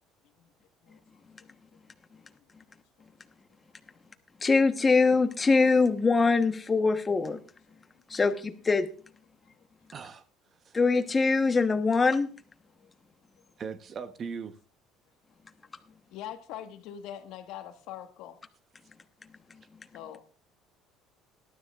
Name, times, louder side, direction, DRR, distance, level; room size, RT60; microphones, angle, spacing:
voice 1, 0.8-1.6 2.2-2.5 3.9-4.0 7.7-8.0 12.8-12.9 16.1-18.4 19.9-20.2, left 10 dB, 70° left, 1.5 m, -44 dB
voice 2, 4.4-7.4 8.1-8.9 10.7-12.3, left 4 dB, 20° left, 1.1 m, -23 dB
voice 3, 9.9-10.2 10.6-10.8 13.6-14.5, right 6 dB, 35° right, 0.9 m, -39 dB
19.0 x 13.0 x 2.4 m
cardioid pair, 130°, 0 cm